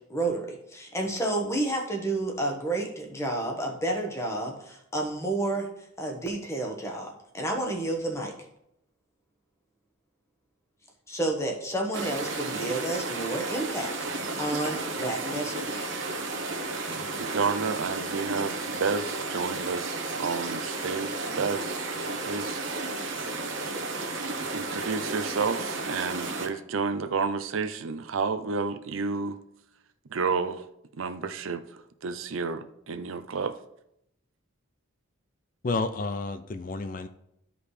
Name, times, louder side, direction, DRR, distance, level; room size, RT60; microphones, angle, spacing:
voice 1, 0.0-5.7 6.0-8.3 11.1-15.9, right 2 dB, 15° left, 1 dB, 1.2 m, -30 dB
sound 1, 11.9-26.5, right 3 dB, 65° right, 1.1 m, -33 dB
voice 2, 16.9-21.8 22.3-22.6 24.5-29.4 30.1-30.7 31.0-31.6 32.0-33.6, right 4 dB, 80° right, 10 dB, 0.6 m, -30 dB
voice 3, 35.6-37.1, left 3 dB, 40° left, 10 dB, 0.4 m, -30 dB
13.0 x 5.0 x 3.3 m, 0.78 s
head